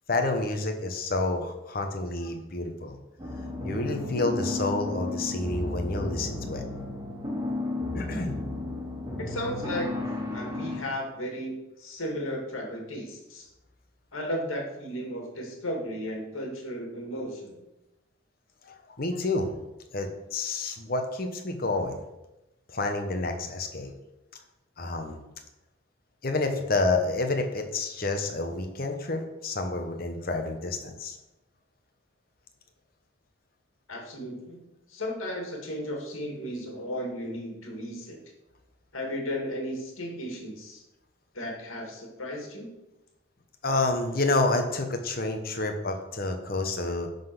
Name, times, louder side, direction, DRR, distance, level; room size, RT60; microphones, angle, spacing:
voice 1, 0.1-3.0 3.6-6.8 7.9-8.4 18.6-19.6 19.9-22.0 22.7-23.9 24.8-25.2 26.2-31.2 43.6-47.1, left 2 dB, 45° left, 5 dB, 1.0 m, -29 dB
sound 1, 3.2-10.8, left 2 dB, 15° right, 1.6 m, -33 dB
voice 2, 9.2-10.1 10.3-13.5 14.1-17.6 33.9-34.6 34.9-38.2 38.9-40.8 41.3-42.7, equal, 80° left, 1 dB, 2.2 m, -35 dB
10.5 x 4.0 x 5.9 m, 0.94 s
head